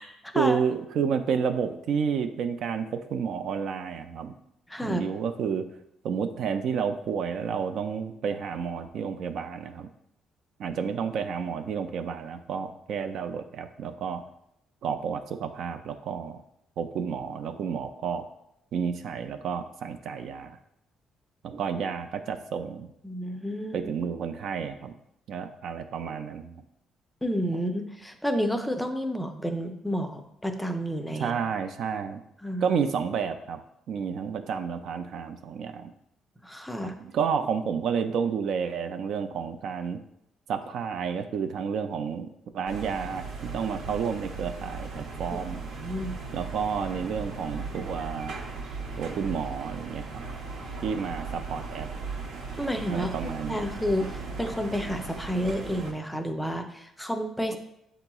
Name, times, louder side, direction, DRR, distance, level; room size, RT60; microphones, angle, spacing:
voice 1, 0.4-4.3 4.8-5.6 6.0-9.9 10.6-14.2 14.8-16.4 16.8-18.2 18.7-20.6 21.4-22.9 23.7-24.9 25.3-26.6 31.2-32.2 32.6-33.6 33.9-35.9 36.8-40.0 40.5-42.3 42.5-45.6 46.3-48.4 49.0-50.0 50.8-51.9 52.9-53.7, right 6 dB, 65° right, 8 dB, 0.3 m, -30 dB
voice 2, 4.7-5.1 23.0-23.9 27.2-31.4 32.4-32.8 36.4-36.9 45.8-46.1 52.6-57.6, equal, 5° left, 6 dB, 0.4 m, -30 dB
sound 1, 42.7-55.9, right 4 dB, 80° right, 0.8 m, -37 dB
7.8 x 2.9 x 2.3 m, 0.79 s
cardioid pair, 115°, 0 cm